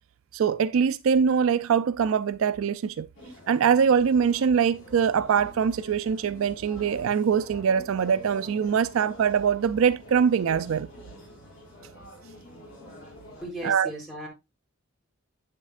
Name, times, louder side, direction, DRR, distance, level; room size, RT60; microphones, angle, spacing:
voice 1, 0.3-3.1 3.5-10.9 13.6-13.9, right 7 dB, 65° right, 0.3 m, -23 dB
sound 1, 3.2-13.5, left 1 dB, 60° left, 3.7 m, -47 dB
voice 2, 13.4-14.3, right 1 dB, ahead, 3.5 m, -36 dB
8.2 x 7.4 x 2.4 m
head